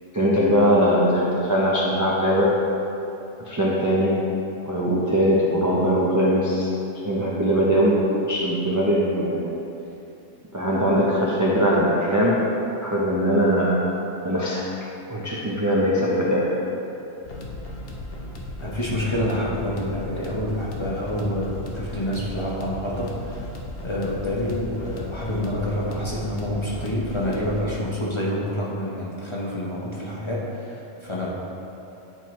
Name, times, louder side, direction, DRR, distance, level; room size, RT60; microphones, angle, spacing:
voice 1, 0.1-2.5 3.5-4.2 4.7-6.8 7.0-9.5 10.5-12.5 12.8-13.8 14.2-14.7 15.1-16.5, equal, 25° right, -6 dB, 0.4 m, -21 dB
sound 1, 17.2-27.6, left 1 dB, 55° left, 0.9 m, -36 dB
voice 2, 18.6-23.5 23.8-31.4, left 1 dB, 30° left, -6 dB, 0.7 m, -27 dB
9.2 x 4.5 x 3.0 m, 2.9 s
omnidirectional pair, 1.3 m